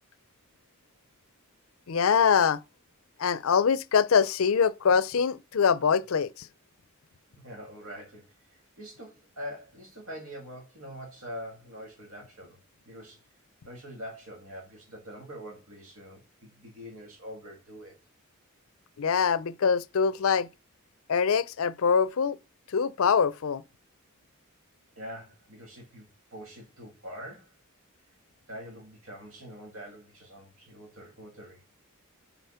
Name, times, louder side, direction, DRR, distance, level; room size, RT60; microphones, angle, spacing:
voice 1, 1.9-2.6 3.2-6.5 19.0-20.5 21.1-22.4 22.7-23.6, left 6 dB, 70° left, 0.5 m, -24 dB
voice 2, 7.4-12.6 12.9-13.2 13.6-18.0 25.0-27.5 28.5-31.6, equal, 70° right, 2.1 m, -44 dB
9.1 x 4.1 x 5.6 m
head